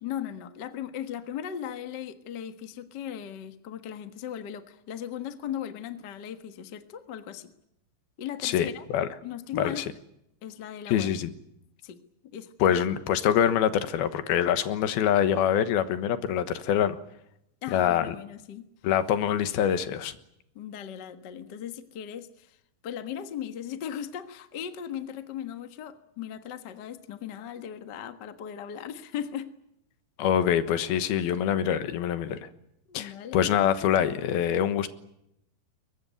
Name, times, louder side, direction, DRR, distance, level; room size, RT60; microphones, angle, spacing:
voice 1, 0.0-7.5 8.2-8.9 9.2-9.9 10.4-11.1 11.8-12.0 12.2-12.7 17.6-18.7 20.5-22.6 22.8-29.5 32.9-33.5, left 9 dB, 65° left, 9 dB, 1.0 m, -38 dB
voice 2, 8.4-9.1 9.5-9.9 10.9-11.3 12.6-17.0 17.7-18.2 18.8-20.1 30.2-32.5 32.9-34.9, left 9 dB, 90° left, 11 dB, 3.2 m, -25 dB
22.5 x 20.5 x 9.4 m, 0.80 s
omnidirectional pair, 4.3 m